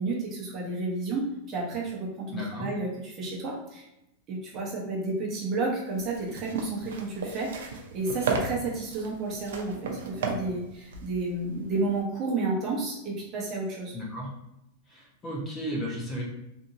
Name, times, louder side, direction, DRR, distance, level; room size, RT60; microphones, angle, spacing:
voice 1, 0.0-2.9 3.2-3.9 4.3-14.0, right 3 dB, 30° right, -4 dB, 0.9 m, -31 dB
voice 2, 2.3-2.7 13.9-14.3 14.9-16.2, equal, 25° left, -3 dB, 0.8 m, -34 dB
sound 1, 5.9-12.0, right 4 dB, 85° right, 0.5 m, -35 dB
2.8 x 2.6 x 2.6 m, 0.87 s
supercardioid pair, 140°, 0 cm